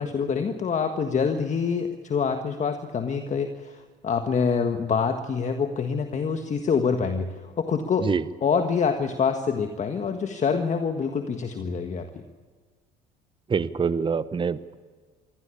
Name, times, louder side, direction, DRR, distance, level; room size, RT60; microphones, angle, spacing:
voice 1, 0.0-8.1 8.4-12.1, left 6 dB, 40° left, 7 dB, 1.6 m, -26 dB
voice 2, 13.5-14.7, right 5 dB, 25° right, 15 dB, 0.9 m, -25 dB
24.0 x 15.5 x 8.5 m, 1.5 s
supercardioid pair, 85°, 19 cm